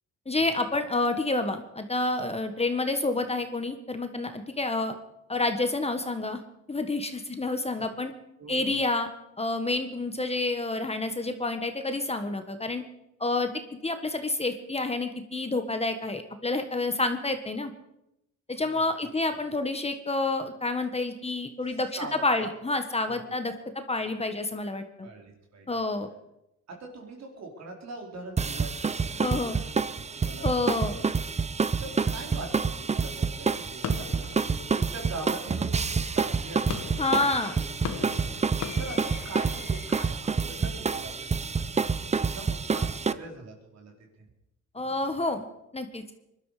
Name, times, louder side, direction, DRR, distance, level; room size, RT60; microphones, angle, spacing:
voice 1, 0.2-4.9 5.3-6.4 6.7-8.1 8.5-9.1 9.4-12.8 13.2-13.5 13.8-17.7 18.5-23.5 23.9-25.1 25.7-26.1 29.2-29.6 30.4-31.0 37.0-37.5 44.7-45.5 45.7-46.0, left 2 dB, 20° left, 7 dB, 1.5 m, -29 dB
voice 2, 8.4-8.8 18.7-18.8 19.3-19.4 22.0-22.5 23.1-23.2 25.0-25.7 26.8-31.1 31.8-37.3 37.6-38.3 38.8-41.9 42.3-43.9, right 3 dB, 60° right, 1 dB, 4.5 m, -42 dB
sound 1, 28.4-43.1, right 5 dB, 20° right, 0.7 m, -28 dB
sound 2, 32.3-35.9 36.4-40.0, left 8 dB, 80° left, 1.5 m, -40 dB
21.5 x 12.0 x 5.0 m, 0.84 s
cardioid pair, 90°, 30 cm